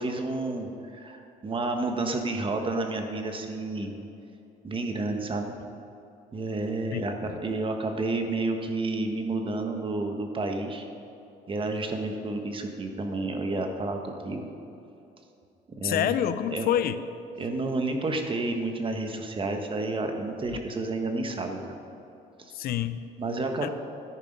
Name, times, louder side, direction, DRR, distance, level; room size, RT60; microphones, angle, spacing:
voice 1, 0.0-3.9 4.6-5.5 6.3-10.8 11.5-14.5 15.7-16.2 16.5-16.7 17.4-21.7 22.4-22.5 23.2-23.7, right 2 dB, 30° right, 4 dB, 1.4 m, -30 dB
voice 2, 6.9-7.4 15.8-17.1 20.5-20.6 22.5-23.0 23.6-23.7, left 10 dB, 60° left, 12 dB, 0.6 m, -28 dB
13.5 x 10.0 x 5.3 m, 2.8 s
cardioid pair, 110°, 17 cm